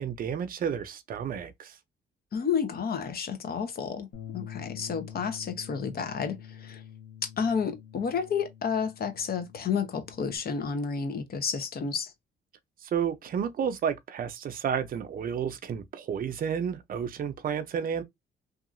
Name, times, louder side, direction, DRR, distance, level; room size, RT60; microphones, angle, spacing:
voice 1, 0.0-1.8 12.8-18.0, right 7 dB, 45° right, 0.5 m, -31 dB
voice 2, 2.3-4.1 4.3-6.8 7.4-12.1, left 6 dB, 50° left, 0.8 m, -31 dB
Bass guitar, 4.1-10.4, left 9 dB, 80° left, 0.9 m, -46 dB
2.7 x 2.4 x 2.5 m
cardioid pair, 90°, 20 cm